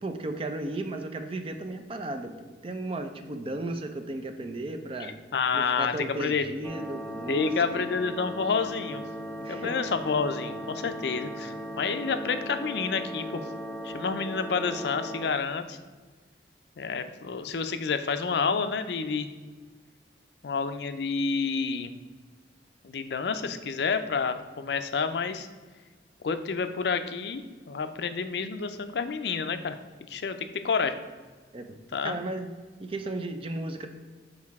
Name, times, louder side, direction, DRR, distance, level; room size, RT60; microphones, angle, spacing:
voice 1, 0.0-5.2 5.5-7.9 9.4-9.8 31.5-31.8 32.0-33.9, right 2 dB, 30° right, 7 dB, 0.4 m, -35 dB
voice 2, 5.3-5.9 6.2-6.4 7.3-9.0 9.5-13.4 13.8-15.8 16.8-19.3 20.4-21.9 22.8-25.5 26.2-27.4 27.7-29.8 30.1-30.4 30.6-30.9 31.9-32.2, left 5 dB, 60° left, 9 dB, 0.4 m, -29 dB
sound 1, 6.6-15.3, equal, 10° left, 0.7 m, -38 dB
6.5 x 4.7 x 3.5 m, 1.4 s
head